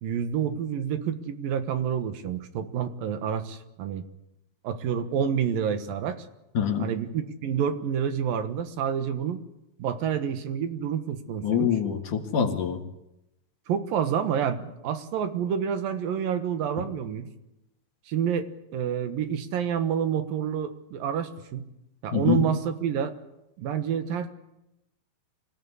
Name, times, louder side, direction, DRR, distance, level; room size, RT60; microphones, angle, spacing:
voice 1, 0.0-4.0 4.6-6.3 6.8-9.4 9.8-11.8 13.7-17.3 18.1-21.6 22.0-23.1 23.6-24.3, right 8 dB, 80° right, 9 dB, 3.1 m, -28 dB
voice 2, 6.5-6.9 11.4-12.8 22.1-22.4, left 7 dB, 65° left, 4 dB, 3.4 m, -25 dB
25.5 x 17.0 x 9.8 m, 0.89 s
omnidirectional pair, 4.1 m